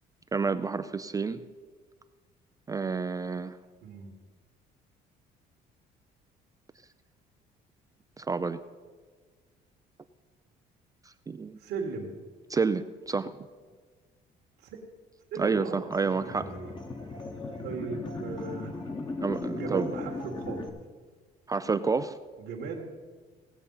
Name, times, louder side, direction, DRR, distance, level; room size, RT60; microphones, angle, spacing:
voice 1, 0.3-1.4 2.7-3.6 8.2-8.6 11.3-11.6 12.5-13.3 15.4-16.6 19.2-19.9 21.5-22.2, right 4 dB, 20° right, 11 dB, 0.4 m, -29 dB
voice 2, 3.8-4.1 11.6-12.1 14.6-14.8 15.3-16.7 17.6-18.7 19.5-20.8 22.4-22.8, right 4 dB, 75° right, -1 dB, 1.6 m, -37 dB
sound 1, 15.9-20.7, left 3 dB, 25° left, 1.3 m, -37 dB
17.5 x 7.0 x 5.6 m, 1.5 s
cardioid pair, 110°, 17 cm